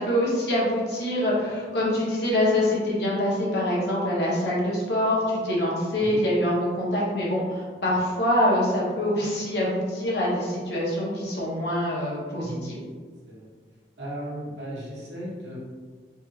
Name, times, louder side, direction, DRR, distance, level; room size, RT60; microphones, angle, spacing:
voice 1, 0.0-12.8, left 1 dB, 65° left, -5 dB, 1.0 m, -25 dB
voice 2, 12.4-12.7 13.3-13.5 14.0-15.6, equal, 80° right, -6 dB, 1.1 m, -36 dB
3.3 x 2.2 x 3.1 m, 1.5 s
head